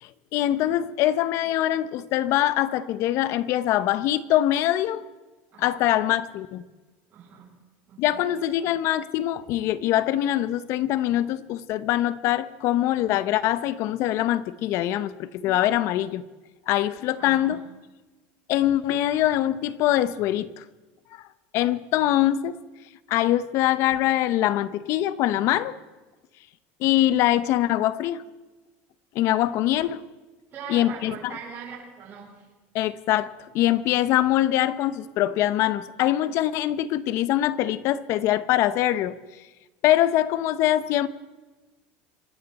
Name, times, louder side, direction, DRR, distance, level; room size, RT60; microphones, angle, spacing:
voice 1, 0.0-5.0 5.6-6.6 8.0-16.2 16.7-17.6 18.5-20.6 21.1-21.2 21.5-22.6 23.1-25.8 26.8-28.2 29.1-30.0 30.7-31.4 32.7-33.3 33.5-39.1 39.8-41.1, left 13 dB, 50° left, 16 dB, 0.8 m, -23 dB
voice 2, 5.5-5.8 7.1-7.5 7.9-8.3 17.2-17.6 30.5-32.5, right 6 dB, 35° right, -8 dB, 7.6 m, -41 dB
26.0 x 12.5 x 4.2 m, 1.2 s
cardioid pair, 145°, 6 cm